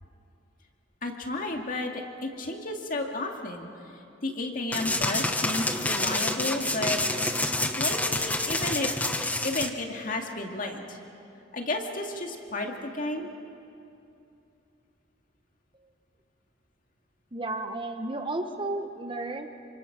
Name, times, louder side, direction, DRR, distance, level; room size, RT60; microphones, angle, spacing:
voice 1, 1.0-3.7 4.2-7.0 7.8-8.9 9.4-11.0 11.5-13.3, left 2 dB, 45° left, 2 dB, 2.2 m, -32 dB
sound 1, 4.7-9.7, left 2 dB, 10° left, 1.0 m, -28 dB
voice 2, 17.3-19.5, right 2 dB, 25° right, 6 dB, 1.2 m, -33 dB
27.0 x 25.0 x 6.1 m, 2.7 s
head